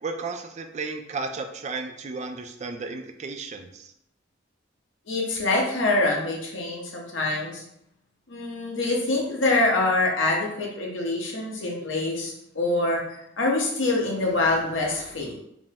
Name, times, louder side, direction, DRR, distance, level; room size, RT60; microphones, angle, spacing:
voice 1, 0.0-3.9, right 4 dB, 35° right, 5 dB, 0.4 m, -34 dB
voice 2, 5.1-7.6 8.3-15.3, left 2 dB, 85° left, -2 dB, 1.0 m, -25 dB
5.0 x 2.0 x 3.5 m, 0.75 s
head